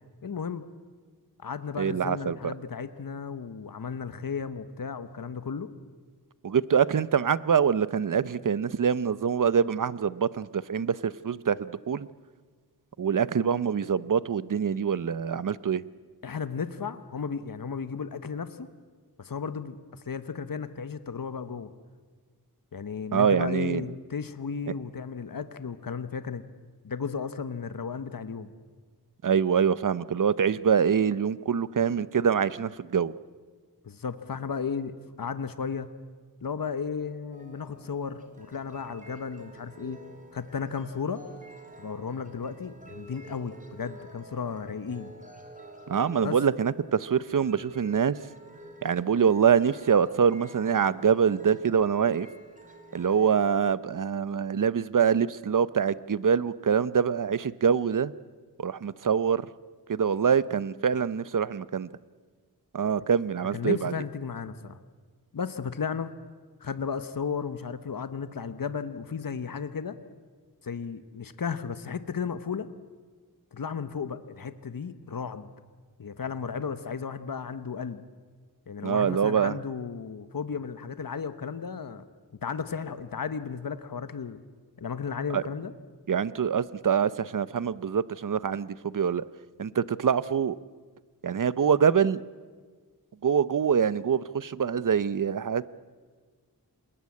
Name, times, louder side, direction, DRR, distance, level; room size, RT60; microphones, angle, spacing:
voice 1, 0.2-0.6 1.4-5.7 16.2-18.7 19.2-21.7 22.7-26.4 26.8-28.5 33.8-35.9 36.4-40.0 40.3-41.2 41.8-45.1 46.2-46.4 63.5-64.8 65.3-66.1 66.6-70.0 70.6-72.7 73.5-75.5 76.0-78.0 78.7-82.0 82.4-84.4 84.8-85.7, left 6 dB, 60° left, 11 dB, 1.2 m, -34 dB
voice 2, 1.8-2.4 6.4-12.1 13.0-15.8 23.1-23.8 29.2-33.1 45.9-48.2 48.8-52.3 52.9-58.1 58.6-59.5 59.9-61.9 62.7-63.9 78.8-79.6 85.3-85.4 86.1-89.2 89.6-90.6 91.2-92.2 93.2-95.7, right 7 dB, 50° right, 17 dB, 0.7 m, -25 dB
sound 1, 37.3-53.5, right 1 dB, 20° right, 3.5 m, -49 dB
27.5 x 21.0 x 8.6 m, 1.5 s
wide cardioid pair, 90°, 39 cm